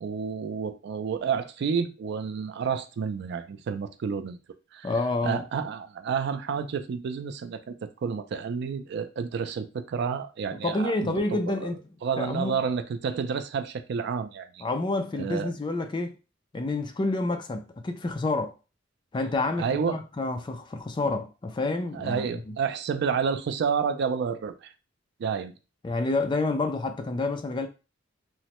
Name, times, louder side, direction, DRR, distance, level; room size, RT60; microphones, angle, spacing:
voice 1, 0.0-4.4 4.7-4.9 5.2-11.7 12.0-14.7 15.2-15.5 19.6-20.0 21.9-24.7 25.2-25.5, right 6 dB, 60° right, 0.3 m, -30 dB
voice 2, 4.8-5.4 10.5-11.8 12.2-12.6 14.6-16.2 16.5-18.5 19.1-22.5 25.8-27.7, left 2 dB, 25° left, 0.3 m, -28 dB
3.1 x 2.0 x 2.9 m
head